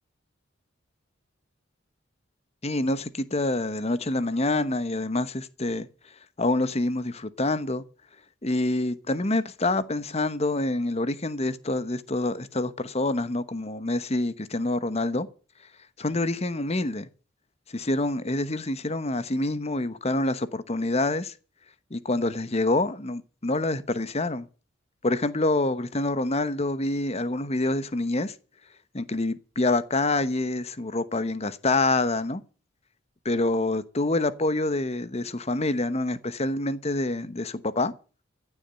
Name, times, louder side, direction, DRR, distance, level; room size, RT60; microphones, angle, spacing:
voice 1, 2.6-5.9 6.4-7.8 8.4-15.3 16.0-17.1 17.7-21.3 21.9-24.5 25.0-28.3 28.9-32.4 33.2-37.9, left 2 dB, 35° left, 1.1 m, -26 dB
15.5 x 7.3 x 9.1 m
head